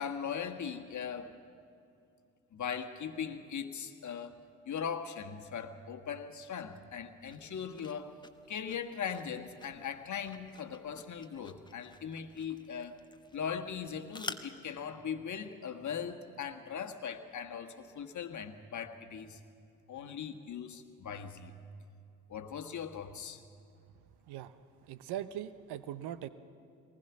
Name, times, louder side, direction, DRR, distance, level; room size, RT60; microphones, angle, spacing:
voice 1, 0.0-1.3 2.5-4.3 4.7-8.2 8.5-13.0 13.3-19.4 19.9-21.5 22.3-23.4, left 7 dB, 40° left, 7 dB, 1.6 m, -39 dB
sound 1, 7.2-14.8, left 3 dB, 10° left, 1.1 m, -50 dB
voice 2, 24.9-26.3, right 11 dB, 65° right, 13 dB, 1.0 m, -40 dB
22.0 x 19.5 x 6.2 m, 2.5 s
hypercardioid pair, 55°, 43 cm